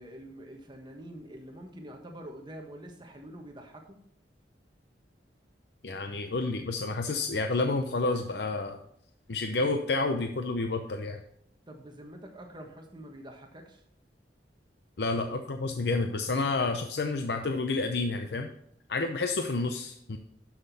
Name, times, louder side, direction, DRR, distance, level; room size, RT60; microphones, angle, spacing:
voice 1, 0.0-4.0 11.7-13.8, right 1 dB, 25° right, 3 dB, 1.4 m, -46 dB
voice 2, 5.8-8.8 9.3-11.2 15.0-18.5 18.9-20.2, left 3 dB, 70° left, 5 dB, 0.7 m, -29 dB
11.5 x 6.1 x 4.1 m, 0.72 s
head